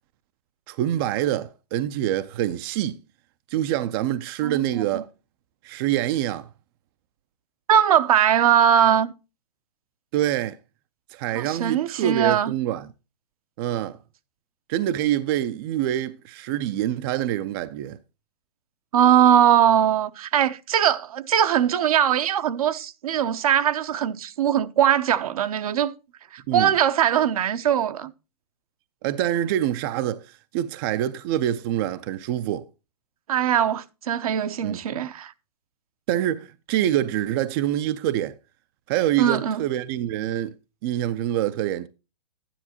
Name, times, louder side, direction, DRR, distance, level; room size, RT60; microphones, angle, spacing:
voice 1, 0.7-3.0 3.5-5.1 5.6-6.5 10.1-10.6 11.1-12.9 13.6-14.0 14.7-18.0 26.5-26.7 29.0-32.7 34.6-34.8 36.1-38.4 38.9-40.5 40.8-41.9, right 12 dB, 35° right, 0.5 m, -25 dB
voice 2, 4.4-5.0 7.7-9.1 11.3-12.5 18.9-25.9 26.3-28.1 33.3-35.3 39.2-39.6, right 9 dB, 65° right, 0.9 m, -21 dB
12.0 x 10.0 x 2.8 m
hypercardioid pair, 135°, 20 cm